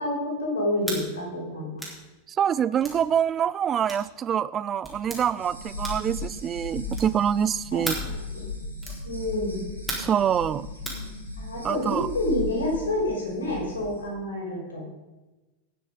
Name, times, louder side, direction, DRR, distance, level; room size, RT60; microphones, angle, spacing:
voice 1, 0.0-1.8 7.7-8.1 9.0-9.6 11.4-14.8, left 1 dB, 65° left, -2 dB, 5.3 m, -28 dB
sound 1, 0.8-1.0 1.8-2.0 2.8-3.0 3.8-4.1 4.8-5.2 5.8-6.1 6.9-7.2 7.8-8.1 8.8-9.0 9.9-10.2 10.8-11.0, right 1 dB, 5° left, 3.9 m, -34 dB
voice 2, 2.3-7.9 10.0-10.7 11.6-12.1, right 9 dB, 25° right, 17 dB, 0.4 m, -25 dB
sound 2, 5.4-14.0, left 2 dB, 85° left, 2.5 m, -37 dB
18.5 x 6.9 x 5.2 m, 1.1 s
figure-of-eight pair, 90°, 0 cm